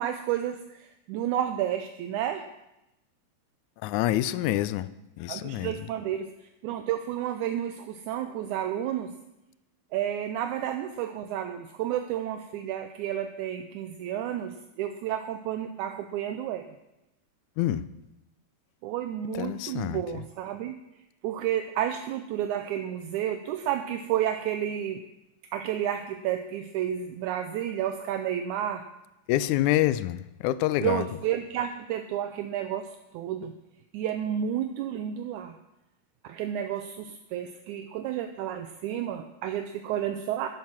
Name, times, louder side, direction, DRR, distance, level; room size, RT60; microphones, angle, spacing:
voice 1, 0.0-2.5 5.3-6.3 6.6-9.2 9.9-16.6 18.8-20.8 21.2-25.0 25.5-28.8 30.8-33.5 33.9-35.6 36.2-40.5, right 10 dB, 80° right, 7 dB, 2.0 m, -31 dB
voice 2, 3.8-4.9 5.2-5.9 17.6-17.8 19.3-20.0 29.3-31.1, left 14 dB, 80° left, 16 dB, 1.9 m, -27 dB
12.0 x 11.0 x 6.0 m, 0.91 s
omnidirectional pair, 3.7 m